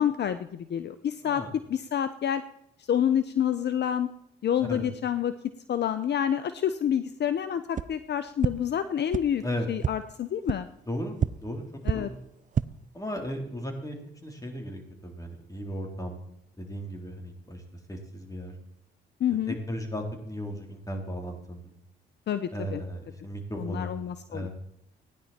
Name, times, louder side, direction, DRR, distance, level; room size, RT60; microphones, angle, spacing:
voice 1, 0.0-2.4 2.9-4.1 4.4-5.3 5.7-9.4 9.7-10.7 11.8-12.1 19.2-19.5 22.3-22.8 23.6-24.5, left 9 dB, 55° left, 13 dB, 0.7 m, -28 dB
sound 1, 7.7-7.8 8.4-8.5 9.1-9.2 9.8-9.9 10.5-10.6 11.2-11.3 11.8-11.9 12.4-12.6, right 7 dB, 40° right, 0.5 m, -26 dB
voice 2, 10.9-11.6 11.9-12.2 12.9-14.0 14.2-16.2 16.6-17.6 17.9-18.5 19.5-21.7 22.5-24.5, equal, 15° left, 2 dB, 3.9 m, -36 dB
16.0 x 10.5 x 4.4 m, 0.78 s
supercardioid pair, 55°, 21 cm